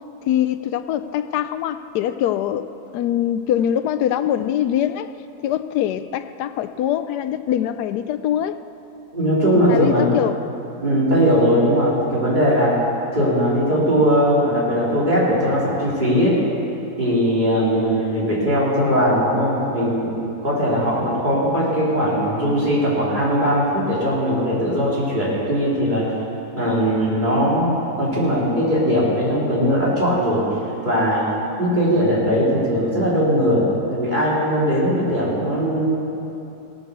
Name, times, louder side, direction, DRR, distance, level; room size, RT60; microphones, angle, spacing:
voice 1, 0.3-5.1 5.4-8.6 9.7-10.4 17.9-18.3, left 10 dB, 80° left, 12 dB, 1.1 m, -23 dB
voice 2, 9.1-10.1 10.8-12.8 13.1-16.4 17.0-26.1 26.6-30.5 30.8-31.2 31.6-35.8, equal, 30° right, -6 dB, 3.4 m, -19 dB
17.0 x 9.2 x 6.7 m, 2.8 s
omnidirectional pair, 1.7 m